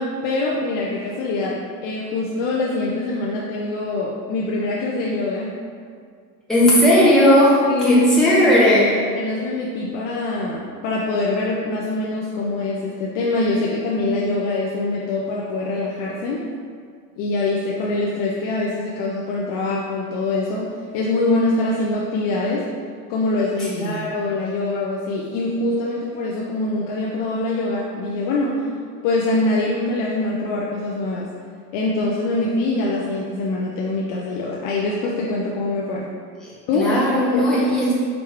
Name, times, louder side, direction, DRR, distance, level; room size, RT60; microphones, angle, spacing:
voice 1, 0.0-5.5 7.7-8.4 9.1-16.4 17.2-22.6 23.1-28.7 29.0-31.3 31.7-36.1 36.7-37.6, left 2 dB, 45° left, -4 dB, 0.6 m, -24 dB
voice 2, 6.5-9.0 23.7-24.0 36.4-38.1, equal, ahead, -9 dB, 1.5 m, -16 dB
5.0 x 3.0 x 3.5 m, 2.1 s
hypercardioid pair, 95°, 50 cm